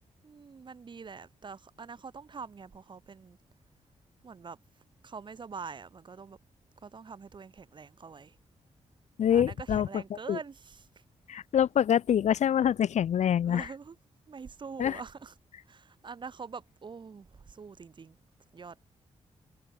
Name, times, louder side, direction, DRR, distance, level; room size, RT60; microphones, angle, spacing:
voice 1, 0.2-3.4 4.2-4.6 5.0-6.4 6.8-8.4 9.3-10.9 13.4-14.0 14.3-15.3 15.7-18.2 18.5-18.8, right 5 dB, 45° right, 4.4 m, -44 dB
voice 2, 9.2-10.0 10.3-10.4 11.3-13.7 14.8-15.0, left 9 dB, 85° left, 3.3 m, -25 dB
wide cardioid pair, 130°, 12 cm